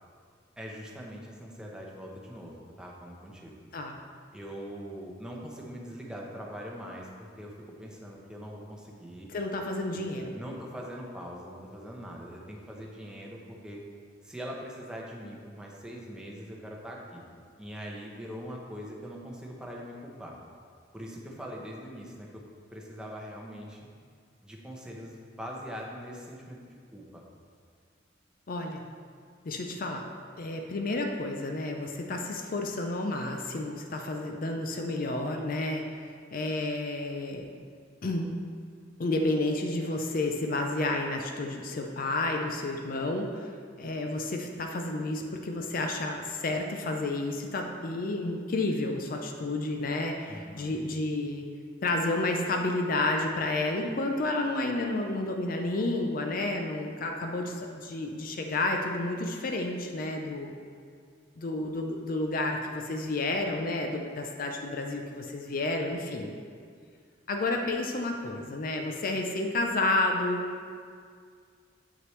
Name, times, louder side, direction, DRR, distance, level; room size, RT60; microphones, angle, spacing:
voice 1, 0.6-3.6 4.3-9.3 9.9-13.8 14.2-17.2 17.6-20.3 20.9-22.4 22.7-23.8 24.4-26.6 26.9-27.2 50.3-50.7, equal, 5° right, -2 dB, 0.8 m, -42 dB
voice 2, 9.3-10.3 28.5-28.8 29.4-30.0 30.4-37.5 38.0-38.3 39.0-43.5 43.8-51.4 51.8-60.5 61.4-66.3 67.3-70.5, left 2 dB, 50° left, 3 dB, 0.5 m, -31 dB
7.7 x 6.0 x 3.2 m, 2.1 s
head